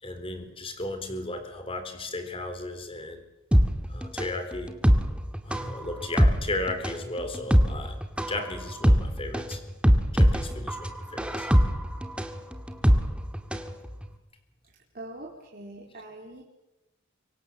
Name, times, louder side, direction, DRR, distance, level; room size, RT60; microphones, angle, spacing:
voice 1, 0.0-3.2 3.9-4.7 5.5-9.6 10.1-11.5, left 2 dB, 25° left, 8 dB, 3.9 m, -35 dB
sound 1, 3.5-13.7 14.0-14.1, equal, 5° right, 1.9 m, -23 dB
voice 2, 14.9-16.4, right 1 dB, 45° right, -3 dB, 4.0 m, -42 dB
25.5 x 25.0 x 7.5 m, 0.95 s
head